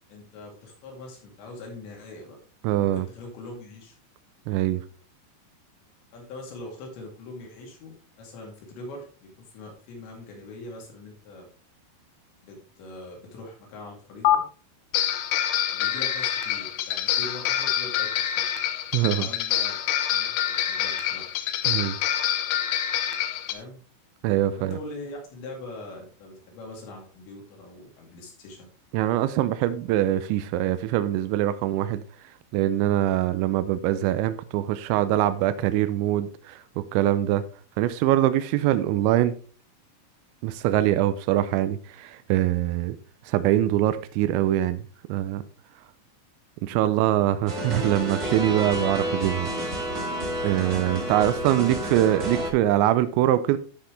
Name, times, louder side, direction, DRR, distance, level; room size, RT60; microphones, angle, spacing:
voice 1, 0.1-2.4 2.8-4.0 6.1-11.5 12.4-14.4 15.7-18.4 19.0-19.8 20.1-21.3 23.5-23.8 24.6-28.7 46.9-47.2 51.0-51.7, left 2 dB, 70° left, 4.8 m, -42 dB
voice 2, 2.6-3.1 4.5-4.8 18.9-19.3 21.7-22.0 24.2-24.7 28.9-32.0 32.5-36.6 36.9-37.4 37.8-39.4 40.4-43.0 43.3-44.8 45.1-45.4 46.6-49.5 50.4-53.6, right 13 dB, 85° right, 2.8 m, -23 dB
sound 1, 14.3-14.4 14.9-23.5, left 11 dB, 85° left, 3.3 m, -26 dB
sound 2, 47.5-52.5, right 1 dB, 35° right, 1.5 m, -30 dB
12.5 x 5.7 x 3.3 m
omnidirectional pair, 5.4 m